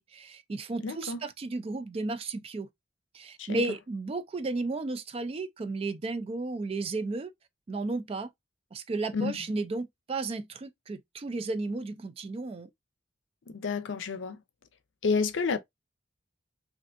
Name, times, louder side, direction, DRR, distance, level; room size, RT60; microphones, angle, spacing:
voice 1, 0.0-2.7 3.1-7.3 7.7-8.3 8.7-12.7, right 3 dB, 30° right, 0.3 m, -33 dB
voice 2, 0.8-1.2 3.4-3.6 9.1-9.3 13.5-14.4 15.0-15.6, left 4 dB, 80° left, 0.5 m, -29 dB
3.4 x 2.6 x 2.5 m
head